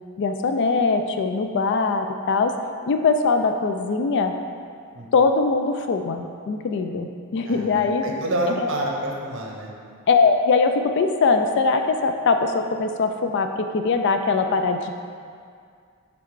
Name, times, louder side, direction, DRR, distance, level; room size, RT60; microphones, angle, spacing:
voice 1, 0.2-2.5 2.9-4.3 5.1-8.0 10.1-14.9, left 4 dB, 55° left, 6 dB, 0.3 m, -21 dB
voice 2, 7.5-9.7, right 1 dB, 60° right, 0 dB, 0.8 m, -28 dB
5.7 x 3.6 x 4.7 m, 2.2 s
head